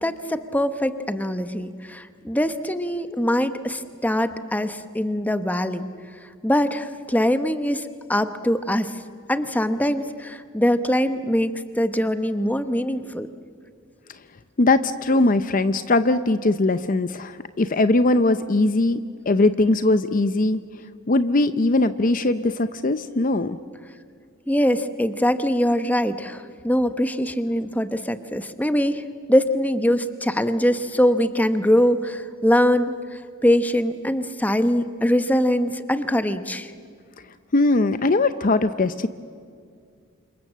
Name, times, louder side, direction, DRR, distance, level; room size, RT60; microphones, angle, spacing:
voice 1, 0.0-5.9 6.4-9.0 9.3-13.3 24.5-29.0 29.3-36.7, equal, 10° left, 10 dB, 1.0 m, -22 dB
voice 2, 14.6-19.0 19.3-20.6 21.1-23.6 37.5-39.1, left 2 dB, 40° left, 12 dB, 0.6 m, -20 dB
28.5 x 26.5 x 7.5 m, 2.2 s
head